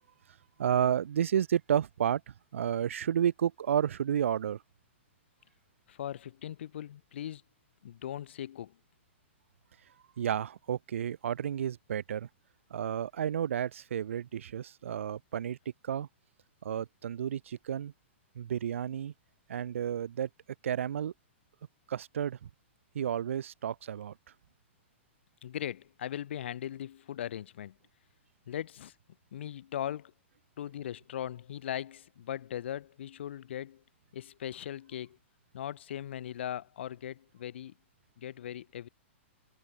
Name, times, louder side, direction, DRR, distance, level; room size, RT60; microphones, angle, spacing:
voice 1, 0.6-4.6 10.2-12.3 12.7-15.6 15.8-16.1 16.6-17.9 18.4-19.1 19.5-20.3 20.6-21.1 21.9-22.5 22.9-24.1, right 9 dB, 90° right, 0.4 m, -31 dB
voice 2, 5.9-7.4 7.8-8.7 25.4-27.8 28.5-28.9 29.3-30.1 30.6-33.8 34.1-35.2 35.5-37.7 38.2-38.9, left 11 dB, 60° left, 0.5 m, -39 dB
hypercardioid pair, 165°, 7 cm